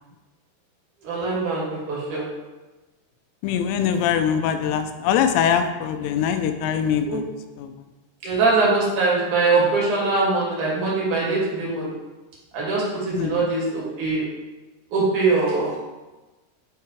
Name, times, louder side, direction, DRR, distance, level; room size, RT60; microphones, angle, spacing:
voice 1, 1.0-2.3 7.1-7.2 8.2-11.9 12.5-14.3 14.9-15.8, right 3 dB, 55° right, -6 dB, 3.3 m, -22 dB
voice 2, 3.4-7.2 7.6-7.7 13.1-13.5, left 8 dB, 85° left, 7 dB, 2.8 m, -22 dB
9.6 x 5.8 x 3.3 m, 1.2 s
omnidirectional pair, 4.9 m